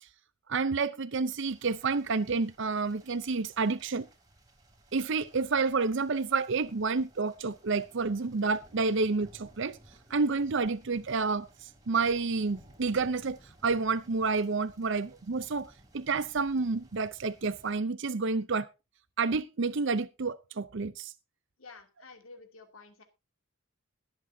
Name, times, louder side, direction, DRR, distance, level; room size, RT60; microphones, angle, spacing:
voice 1, 0.5-4.1 4.9-9.8 10.1-13.4 13.6-18.7 19.2-21.1, right 4 dB, 55° right, 0.6 m, -29 dB
sound 1, 1.4-17.8, right 1 dB, 20° right, 2.9 m, -58 dB
voice 2, 21.6-23.0, left 4 dB, 75° left, 2.8 m, -51 dB
21.0 x 8.1 x 2.7 m
head